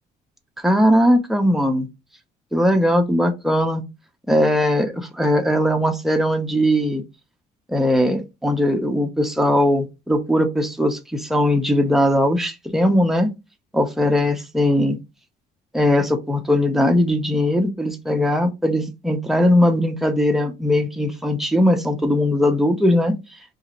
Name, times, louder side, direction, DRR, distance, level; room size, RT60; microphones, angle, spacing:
voice 1, 0.6-1.9 2.5-3.8 4.3-7.0 7.7-13.3 13.7-15.0 15.7-23.2, left 1 dB, ahead, 0.6 m, -19 dB
2.7 x 2.4 x 3.0 m
cardioid pair, 110°, 17 cm